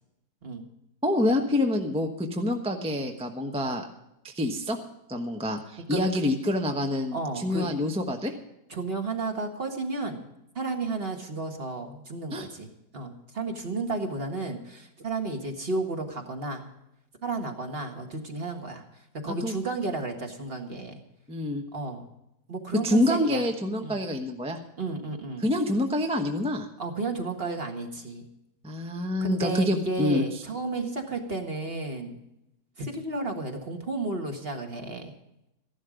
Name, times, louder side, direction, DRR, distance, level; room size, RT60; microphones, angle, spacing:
voice 1, 1.0-3.9 4.2-4.8 5.1-8.3 12.3-12.5 19.3-19.5 21.3-21.6 22.8-24.6 25.4-26.7 28.6-30.2, left 1 dB, 5° right, 3 dB, 0.7 m, -27 dB
voice 2, 7.1-7.7 8.7-10.3 10.5-16.7 17.2-21.0 21.7-22.1 22.5-23.4 23.8-24.0 24.8-25.5 26.8-28.3 29.2-32.2 32.8-35.1, right 3 dB, 30° right, 3 dB, 1.7 m, -33 dB
14.5 x 11.5 x 5.0 m, 0.86 s
omnidirectional pair, 2.1 m